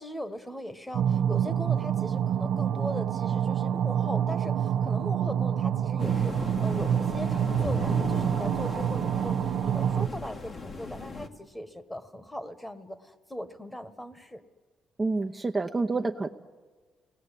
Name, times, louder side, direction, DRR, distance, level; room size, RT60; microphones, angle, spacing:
voice 1, 0.0-14.4, equal, 10° left, 11 dB, 1.5 m, -39 dB
sound 1, 0.9-10.1, right 9 dB, 75° right, 0.7 m, -27 dB
sound 2, 6.0-11.3, left 3 dB, 45° left, 1.7 m, -37 dB
voice 2, 15.0-16.3, right 3 dB, 25° right, 4 dB, 0.8 m, -28 dB
29.5 x 19.5 x 8.4 m, 1.4 s
cardioid pair, 90°, 0 cm